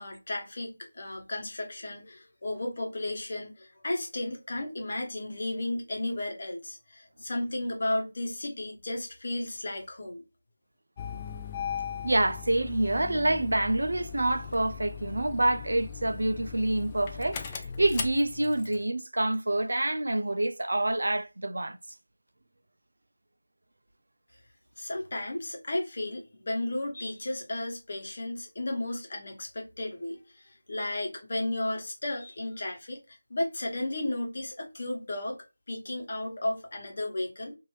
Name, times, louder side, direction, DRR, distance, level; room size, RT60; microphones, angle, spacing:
voice 1, 0.0-10.2 24.8-33.0 33.3-35.4 35.7-37.5, left 1 dB, 50° left, 1.0 m, -34 dB
Engine starting, 11.0-18.8, left 7 dB, 20° left, 0.4 m, -39 dB
voice 2, 12.0-21.8, right 1 dB, 70° right, 0.4 m, -27 dB
3.0 x 2.6 x 3.2 m
figure-of-eight pair, 165°, 0 cm